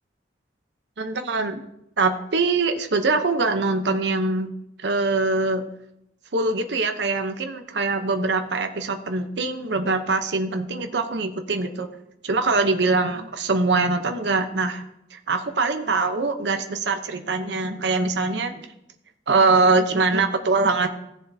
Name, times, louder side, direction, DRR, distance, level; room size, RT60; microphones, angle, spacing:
voice 1, 1.0-1.6 2.0-4.5 4.8-5.6 6.3-11.9 12.2-14.8 15.1-18.7 19.3-20.9, right 3 dB, 70° right, 7 dB, 0.8 m, -23 dB
16.5 x 7.3 x 2.8 m, 0.84 s
head